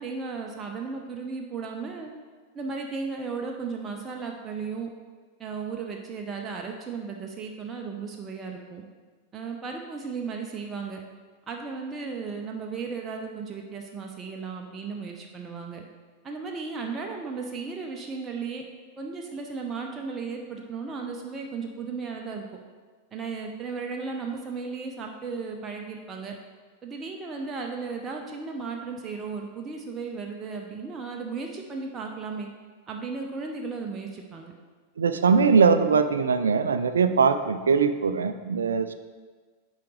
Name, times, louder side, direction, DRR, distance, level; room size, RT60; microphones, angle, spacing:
voice 1, 0.0-2.1 2.5-4.9 5.4-8.8 9.3-11.0 11.5-15.8 16.2-18.6 19.0-22.4 23.1-26.3 26.8-32.5 32.9-34.5, right 4 dB, 20° right, 1 dB, 0.7 m, -35 dB
voice 2, 35.0-38.9, right 5 dB, 70° right, 10 dB, 0.4 m, -21 dB
9.3 x 4.8 x 3.1 m, 1.5 s
figure-of-eight pair, 90°, 0 cm